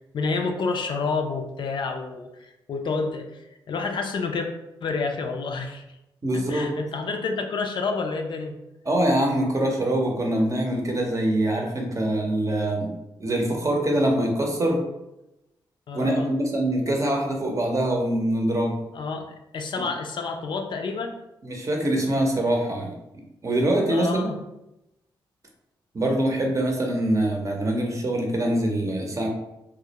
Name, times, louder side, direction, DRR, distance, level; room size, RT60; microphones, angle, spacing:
voice 1, 0.1-4.5 4.8-5.8 6.3-8.5 15.9-16.3 18.9-21.1 23.9-24.4, left 4 dB, 60° left, 4 dB, 0.4 m, -29 dB
voice 2, 6.2-6.7 8.9-12.9 13.2-14.8 15.9-18.8 19.8-19.9 21.4-22.9 23.4-24.4 25.9-29.3, right 1 dB, 35° right, 1 dB, 0.6 m, -24 dB
2.3 x 2.0 x 2.8 m, 0.91 s
cardioid pair, 60°, 9 cm